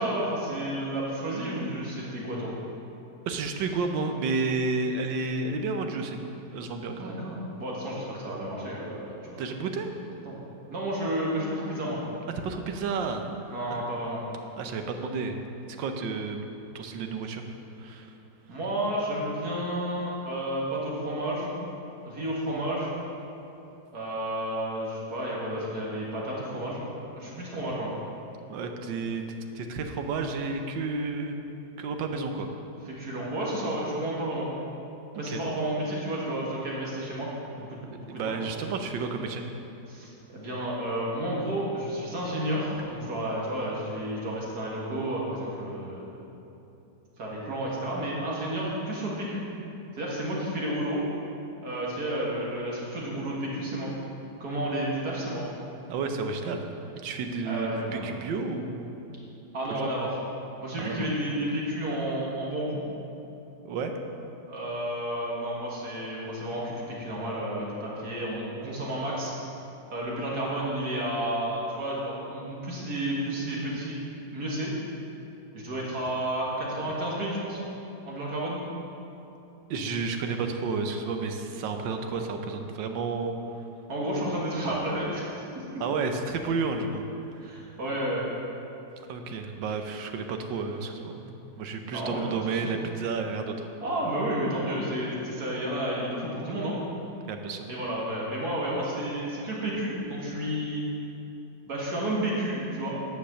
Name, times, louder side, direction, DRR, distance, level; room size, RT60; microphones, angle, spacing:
voice 1, 0.0-2.5 7.0-9.4 10.3-10.4 10.7-12.0 13.5-14.2 18.5-21.5 22.0-23.0 23.9-27.9 33.0-34.5 35.2-38.3 39.9-46.3 47.2-49.4 50.0-51.0 51.6-53.9 54.4-55.4 57.4-58.1 59.5-60.2 60.6-62.8 64.5-69.3 69.9-74.0 74.3-74.7 75.5-77.6 78.0-78.6 83.9-85.3 85.5-85.6 87.4-88.3 91.8-92.8 93.8-96.8 97.7-100.8 101.7-103.0, right 1 dB, 60° right, -5 dB, 2.1 m, -31 dB
voice 2, 3.3-6.2 6.5-7.2 9.4-9.9 12.4-13.3 13.7-13.8 14.6-15.4 15.8-16.5 16.7-17.5 17.8-18.1 28.5-31.4 31.8-32.5 35.3-35.4 38.1-39.5 55.9-56.7 57.0-59.0 59.7-59.8 60.8-61.1 63.6-63.9 79.7-83.6 85.8-87.6 89.1-93.7 97.3-97.7, right 4 dB, 90° right, 5 dB, 1.5 m, -31 dB
9.5 x 6.8 x 6.2 m, 2.9 s
omnidirectional pair, 1.9 m